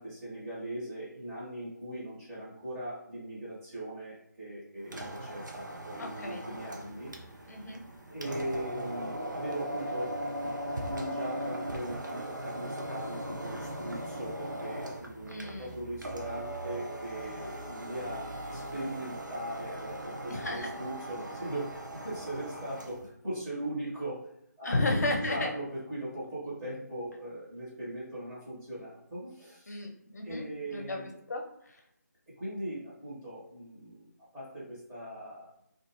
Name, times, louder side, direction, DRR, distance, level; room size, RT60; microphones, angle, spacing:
voice 1, 0.0-7.1 8.1-10.5 10.8-24.2 24.6-29.8 30.2-31.1 32.4-34.0 34.3-35.5, right 1 dB, 15° right, -10 dB, 1.2 m, -39 dB
sound 1, 4.8-23.1, right 1 dB, 80° right, 0.5 m, -39 dB
voice 2, 6.0-6.4 7.5-7.8 15.2-15.7 20.3-20.7 24.6-25.5 29.7-31.0 31.3-31.8, left 2 dB, 60° left, 1 dB, 0.7 m, -33 dB
2.4 x 2.4 x 2.9 m, 0.74 s
figure-of-eight pair, 150°, 10 cm